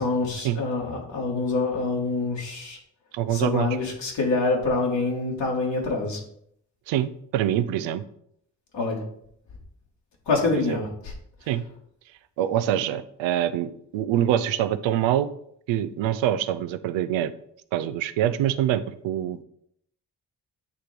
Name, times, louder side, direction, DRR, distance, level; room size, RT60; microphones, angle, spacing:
voice 1, 0.0-2.8 3.3-6.2 8.7-9.0 10.3-11.1, left 3 dB, 70° left, -2 dB, 1.9 m, -26 dB
voice 2, 3.1-3.7 6.9-8.0 11.5-11.6 12.4-15.3 15.7-17.3 17.7-19.4, right 11 dB, 85° right, 13 dB, 0.6 m, -25 dB
8.3 x 3.0 x 5.1 m, 0.69 s
supercardioid pair, 40°, 45 cm